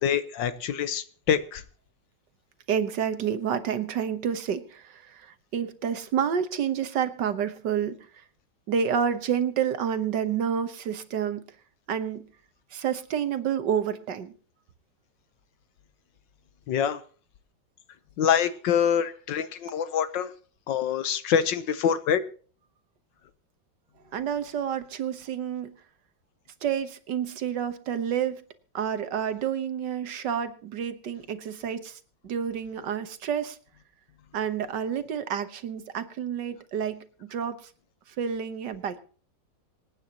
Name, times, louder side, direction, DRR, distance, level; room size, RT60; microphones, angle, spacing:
voice 1, 0.0-1.6 16.7-17.0 18.2-20.3 20.7-22.2, left 8 dB, 75° left, 1.6 m, -25 dB
voice 2, 2.7-8.2 8.7-11.4 11.9-12.3 12.7-14.3 24.1-25.7 26.6-28.4 28.7-33.6 34.3-37.7 38.1-39.0, right 8 dB, 65° right, 1.7 m, -29 dB
26.0 x 9.2 x 2.9 m
omnidirectional pair, 2.1 m